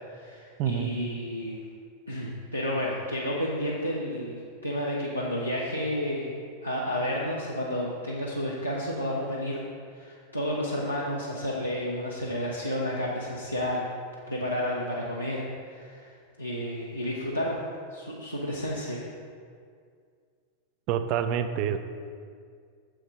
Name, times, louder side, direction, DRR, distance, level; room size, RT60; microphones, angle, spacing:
voice 1, 0.1-1.6 2.1-6.3 6.6-9.6 9.9-13.9 14.3-16.1 16.4-17.6 17.9-19.0, left 1 dB, 90° left, -5 dB, 0.8 m, -31 dB
voice 2, 0.6-1.2 20.9-21.8, right 8 dB, 40° right, 9 dB, 0.5 m, -28 dB
7.2 x 6.2 x 4.8 m, 2.2 s
figure-of-eight pair, 90°, 0 cm